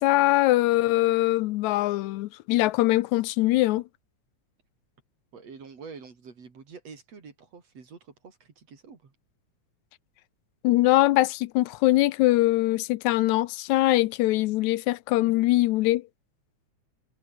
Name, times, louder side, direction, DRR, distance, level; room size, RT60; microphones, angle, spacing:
voice 1, 0.0-3.8 10.6-16.0, left 17 dB, 80° left, 2.0 m, -22 dB
voice 2, 5.3-9.2, right 5 dB, 60° right, 4.8 m, -46 dB
omnidirectional pair, 3.4 m